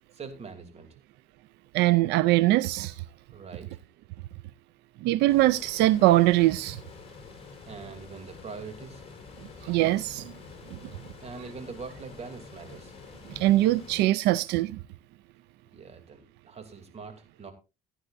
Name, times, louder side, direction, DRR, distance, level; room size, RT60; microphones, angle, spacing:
voice 1, 0.1-0.9 3.3-3.7 7.7-9.0 11.2-12.9 15.7-17.5, right 5 dB, 40° right, 2.9 m, -43 dB
voice 2, 1.7-3.0 5.0-6.8 9.6-10.3 10.7-10.8 13.3-14.8, right 16 dB, 85° right, 0.4 m, -22 dB
sound 1, 5.3-14.0, left 5 dB, 35° left, 4.7 m, -47 dB
15.5 x 10.0 x 2.6 m
cardioid pair, 110°, 17 cm